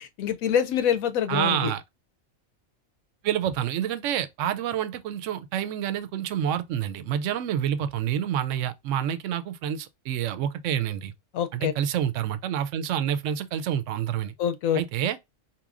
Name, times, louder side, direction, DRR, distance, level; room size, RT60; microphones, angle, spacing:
voice 1, 0.0-1.7 11.3-11.7 14.4-14.8, left 8 dB, 85° left, 1.1 m, -25 dB
voice 2, 1.3-1.8 3.2-11.1 11.5-14.3 14.7-15.2, right 10 dB, 70° right, 0.9 m, -28 dB
4.1 x 2.9 x 2.4 m
omnidirectional pair, 1.4 m